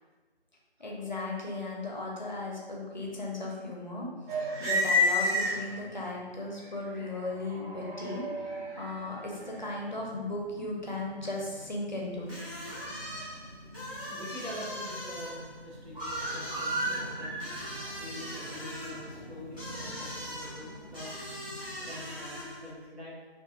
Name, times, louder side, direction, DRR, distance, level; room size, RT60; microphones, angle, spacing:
voice 1, 0.8-4.1 4.6-8.3 8.8-12.3, left 2 dB, 45° left, -2 dB, 0.5 m, -36 dB
sound 1, 4.3-6.0 6.6-22.4, left 1 dB, 50° right, 1.1 m, -35 dB
sound 2, 12.3-22.7, left 1 dB, 20° right, 0.7 m, -41 dB
voice 2, 13.3-17.5 18.0-21.1 21.5-23.1, equal, 75° right, -5 dB, 1.0 m, -45 dB
2.5 x 2.3 x 2.5 m, 1.3 s
figure-of-eight pair, 160°, 32 cm